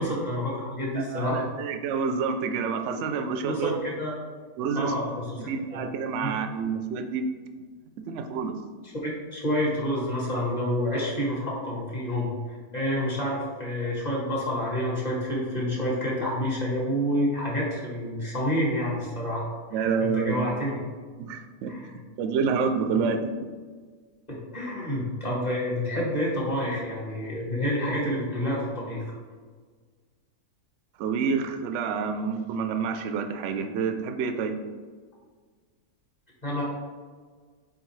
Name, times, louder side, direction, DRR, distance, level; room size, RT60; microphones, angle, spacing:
voice 1, 0.0-1.5 3.5-4.1 4.7-5.8 6.2-6.3 8.9-12.3 12.7-19.4 19.7-20.8 21.7-22.0 24.3-29.1 36.4-36.6, equal, 25° left, -4 dB, 1.5 m, -28 dB
voice 2, 1.0-3.7 4.6-4.9 5.4-7.3 8.1-8.5 19.7-20.5 21.2-23.3 31.0-34.6, right 5 dB, 65° right, 7 dB, 0.8 m, -28 dB
8.1 x 3.8 x 3.2 m, 1.5 s
omnidirectional pair, 1.6 m